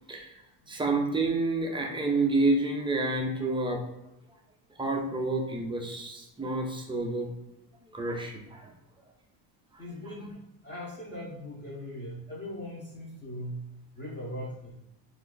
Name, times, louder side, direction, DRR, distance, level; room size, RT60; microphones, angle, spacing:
voice 1, 0.7-3.8 4.8-7.3 7.9-8.7, right 2 dB, 15° right, 1 dB, 0.3 m, -29 dB
voice 2, 9.8-13.7 14.0-14.8, equal, 25° left, -4 dB, 0.7 m, -40 dB
2.5 x 2.4 x 3.7 m, 0.89 s
cardioid pair, 110°, 44 cm